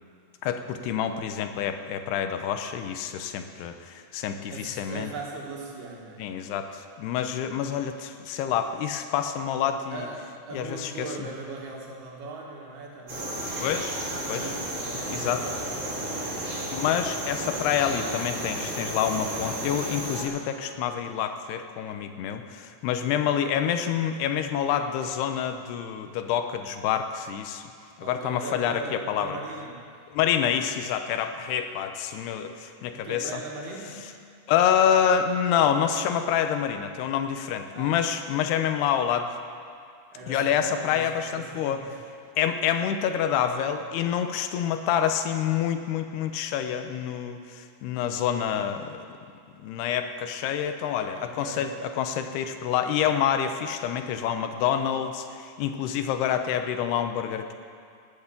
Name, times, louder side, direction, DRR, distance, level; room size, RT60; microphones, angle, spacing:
voice 1, 0.4-5.1 6.2-10.1 10.5-11.1 13.6-14.0 14.3-14.4 15.1-15.4 16.7-27.6 28.1-28.8 29.1-29.4 30.1-33.3 34.5-39.3 40.3-41.8 42.4-49.0 49.6-57.5, left 9 dB, 85° left, 7 dB, 2.7 m, -27 dB
voice 2, 4.5-6.3 9.9-13.8 14.1-16.5 28.0-29.9 32.9-34.2 35.6-35.7 37.7-38.0 40.1-42.0 51.1-51.7, right 3 dB, 65° right, -2 dB, 3.8 m, -39 dB
sound 1, 13.1-20.2, right 1 dB, 30° right, 3.4 m, -33 dB
19.5 x 8.8 x 7.1 m, 2.3 s
omnidirectional pair, 4.9 m